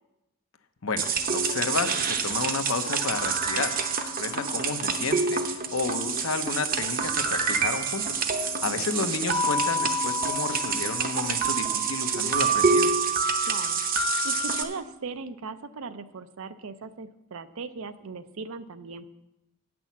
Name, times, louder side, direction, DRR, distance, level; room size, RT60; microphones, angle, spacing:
voice 1, 0.8-12.9, left 4 dB, 75° left, 8 dB, 0.8 m, -32 dB
sound 1, 1.0-14.6, right 4 dB, 40° right, 0.7 m, -27 dB
voice 2, 13.4-19.0, right 4 dB, 75° right, 12 dB, 0.5 m, -39 dB
9.1 x 6.1 x 7.2 m, 0.95 s
head